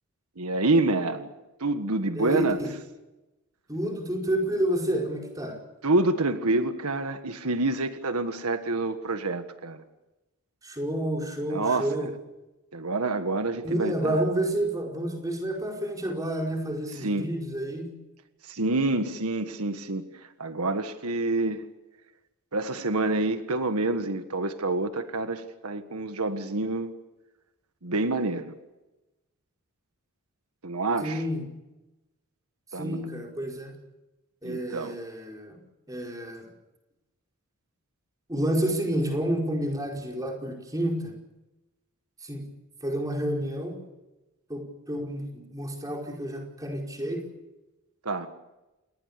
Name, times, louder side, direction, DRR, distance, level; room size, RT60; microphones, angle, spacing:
voice 1, 0.4-1.3 1.6-2.6 5.8-9.8 11.5-12.1 12.7-14.2 17.0-17.3 18.4-20.1 20.4-21.6 22.5-26.9 27.8-28.5 30.6-31.2 32.7-33.1 34.4-34.9 48.0-48.3, right 2 dB, 85° right, 8 dB, 1.6 m, -27 dB
voice 2, 2.1-2.7 3.7-5.6 10.6-12.1 13.6-17.9 31.0-31.4 32.7-33.8 34.4-35.6 35.9-36.5 38.3-41.1 42.2-42.4 42.8-43.8 44.5-47.2, right 1 dB, 15° right, 0 dB, 4.9 m, -29 dB
28.5 x 20.0 x 6.9 m, 1.0 s
head